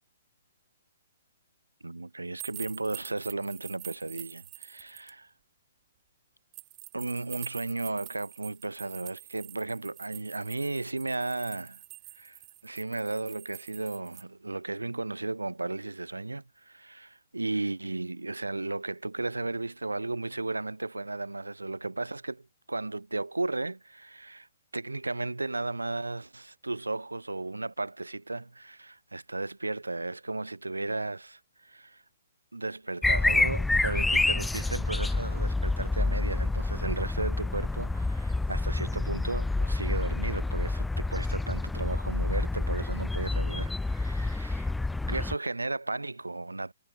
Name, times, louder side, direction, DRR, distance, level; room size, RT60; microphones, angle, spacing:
voice 1, 1.8-5.3 6.9-11.8 12.2-24.5 24.7-32.0 32.5-44.7 45.1-46.7, right 2 dB, 90° right, 6.9 m, -35 dB
sound 1, 2.4-5.1 6.5-14.2, right 21 dB, 30° right, 5.4 m, -46 dB
sound 2, 33.0-45.3, left 2 dB, 5° left, 0.5 m, -28 dB
figure-of-eight pair, 130°, 0 cm